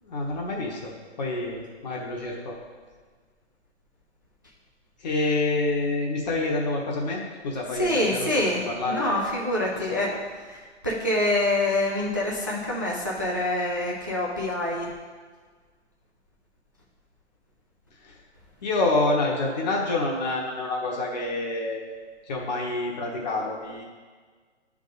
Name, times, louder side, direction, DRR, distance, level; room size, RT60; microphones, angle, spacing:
voice 1, 0.0-2.5 5.0-9.2 18.0-18.2 18.6-21.8 22.3-23.8, left 2 dB, 40° left, -2 dB, 1.1 m, -27 dB
voice 2, 7.8-14.9, left 1 dB, 20° right, -4 dB, 0.3 m, -26 dB
9.5 x 3.6 x 4.0 m, 1.5 s
hypercardioid pair, 155°, 34 cm